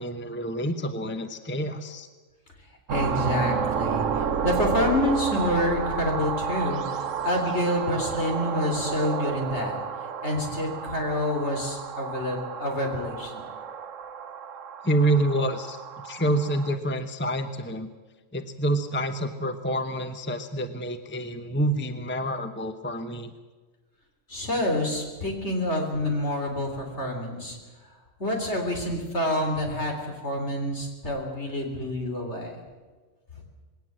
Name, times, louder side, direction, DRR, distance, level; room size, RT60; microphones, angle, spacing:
voice 1, 0.0-2.1 14.8-15.8 16.0-17.9 18.3-23.3, right 1 dB, 10° left, 8 dB, 0.9 m, -27 dB
voice 2, 2.9-9.8 10.2-13.4 24.3-27.6 28.2-32.6, left 1 dB, 60° left, 2 dB, 4.1 m, -28 dB
sound 1, 2.9-16.8, right 7 dB, 80° right, 1.2 m, -31 dB
21.0 x 17.5 x 7.6 m, 1.3 s
omnidirectional pair, 1.3 m